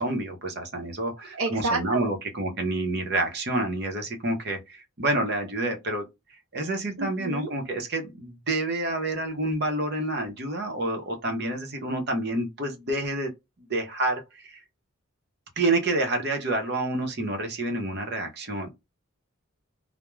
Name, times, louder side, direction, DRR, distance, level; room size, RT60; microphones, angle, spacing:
voice 1, 0.0-6.1 6.5-13.3 13.7-14.6 15.6-18.7, right 2 dB, 50° right, 0.7 m, -28 dB
voice 2, 1.4-2.1 7.0-7.5, right 3 dB, 90° right, 0.5 m, -29 dB
2.3 x 2.1 x 3.0 m
head